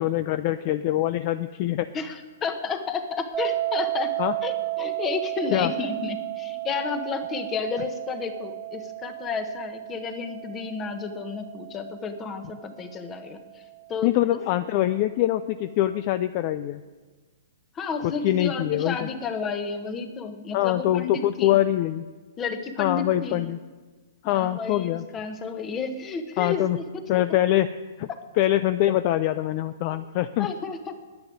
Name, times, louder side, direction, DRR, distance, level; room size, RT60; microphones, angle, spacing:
voice 1, 0.0-1.9 4.2-4.4 5.5-5.7 14.0-16.8 18.0-19.1 20.5-22.0 22.8-23.6 24.2-25.0 26.4-26.8 27.1-27.7 28.0-28.1 28.4-30.5, left 14 dB, 40° left, 12 dB, 0.4 m, -24 dB
voice 2, 1.9-4.2 4.4-13.4 13.9-14.4 17.7-21.6 22.4-23.5 24.2-27.0 28.1-28.2 30.4-30.9, left 5 dB, 20° left, 8 dB, 1.2 m, -32 dB
sound 1, 3.3-14.3, right 19 dB, 25° right, 0.5 m, -33 dB
10.5 x 9.0 x 9.4 m, 1.4 s
hypercardioid pair, 145°, 0 cm